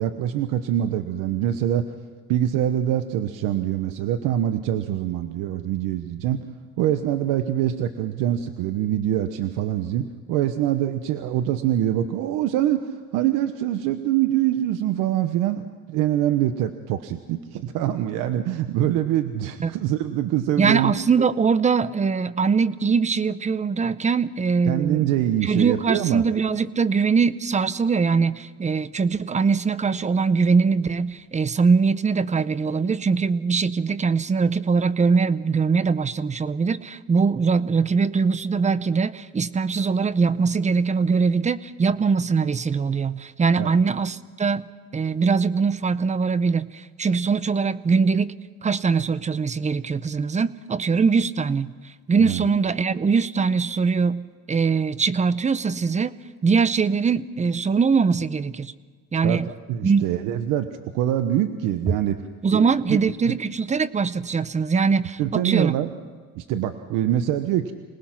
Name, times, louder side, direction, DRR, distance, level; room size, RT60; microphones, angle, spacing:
voice 1, 0.0-1.8 2.3-6.5 6.8-20.9 24.7-26.2 43.6-43.7 52.2-52.4 59.2-63.0 63.3-63.4 65.2-65.9 66.3-67.7, right 12 dB, 85° right, 9 dB, 1.1 m, -24 dB
voice 2, 20.6-25.1 25.4-44.7 44.9-48.3 48.6-51.7 52.1-56.1 56.4-58.7 59.1-59.5 59.8-60.0 62.4-65.7, right 5 dB, 20° right, 16 dB, 0.7 m, -22 dB
26.5 x 19.5 x 5.9 m, 1.5 s
cardioid pair, 100°, 31 cm